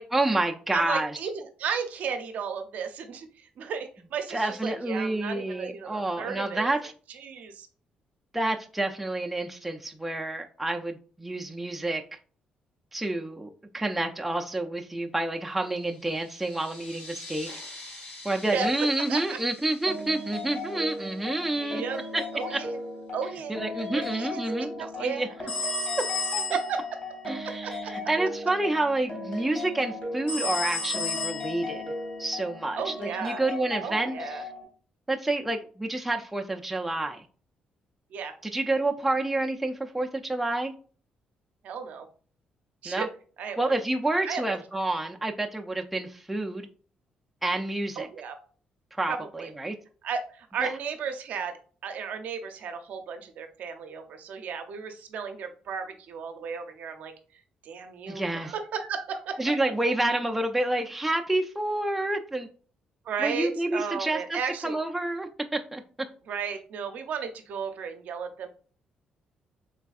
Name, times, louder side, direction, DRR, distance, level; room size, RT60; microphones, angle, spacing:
voice 1, 0.1-1.2 4.3-6.9 8.3-12.0 12.9-17.5 18.2-21.8 22.1-22.2 22.5-22.6 23.5-25.3 27.3-31.8 32.2-34.4 35.1-37.3 38.4-40.7 42.9-43.1 43.6-46.7 47.4-48.1 49.0-49.8 50.6-50.7 58.1-58.5 59.4-62.5 63.2-64.4 64.6-65.8, right 2 dB, 5° right, 0.3 m, -29 dB
voice 2, 0.7-6.7 7.1-7.7 18.5-18.7 19.1-19.4 20.7-20.8 21.6-22.8 23.1-23.6 23.9-25.4 26.5-26.8 27.2-27.9 32.8-33.4 33.8-34.4 38.1-38.3 41.6-42.1 42.8-43.1 43.4-43.7 44.3-44.6 48.0-48.4 49.1-49.5 50.0-51.6 51.8-57.1 57.6-59.4 63.0-64.7 66.3-68.5, right 6 dB, 70° right, 0.5 m, -34 dB
sound 1, 15.6-21.9, left 2 dB, 65° left, 1.5 m, -47 dB
sound 2, 19.9-34.6, left 2 dB, 45° left, 1.4 m, -37 dB
sound 3, 25.5-26.8 30.3-31.9, left 3 dB, 85° left, 0.7 m, -31 dB
3.4 x 3.2 x 2.3 m
cardioid pair, 115°, 3 cm